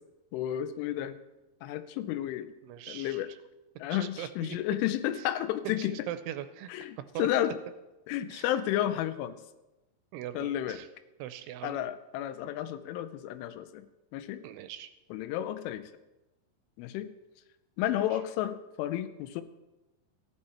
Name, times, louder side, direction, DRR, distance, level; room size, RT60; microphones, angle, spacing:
voice 1, 0.3-1.2 1.6-2.5 2.9-3.3 3.8-5.9 6.7-7.5 8.1-9.3 10.3-10.8 11.6-13.9 14.1-14.4 15.1-15.9 16.8-17.1 17.8-19.4, left 12 dB, 85° left, 11 dB, 3.1 m, -32 dB
voice 2, 2.6-3.2 3.9-4.6 5.8-6.9 7.1-7.3 8.3-8.5 10.1-10.9 11.2-11.8 14.4-14.9 17.9-18.2, right 12 dB, 80° right, 11 dB, 2.9 m, -41 dB
15.0 x 11.0 x 4.3 m, 1.0 s
omnidirectional pair, 5.7 m